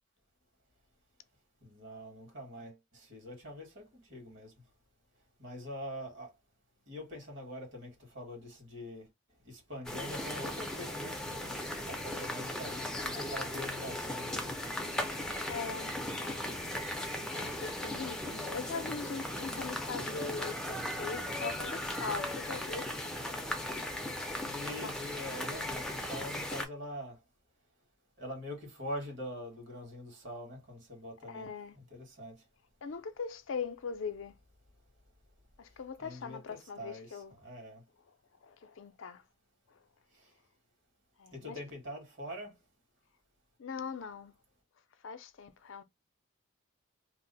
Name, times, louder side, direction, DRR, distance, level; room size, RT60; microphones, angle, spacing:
voice 1, 1.6-4.5 5.4-6.3 6.9-9.1 9.4-14.6 24.4-27.2 28.2-32.4 36.0-37.8 40.1-40.3 41.3-42.5, equal, 60° right, 1.5 m, -44 dB
sound 1, 9.8-26.6, left 1 dB, 5° left, 0.4 m, -37 dB
voice 2, 15.5-16.5 17.3-22.9 24.8-25.0 31.3-31.8 32.8-34.3 35.6-37.3 38.4-39.2 39.7-39.8 41.2-41.6 43.6-44.3 45.0-45.8, left 5 dB, 65° left, 0.4 m, -41 dB
2.8 x 2.0 x 3.8 m
head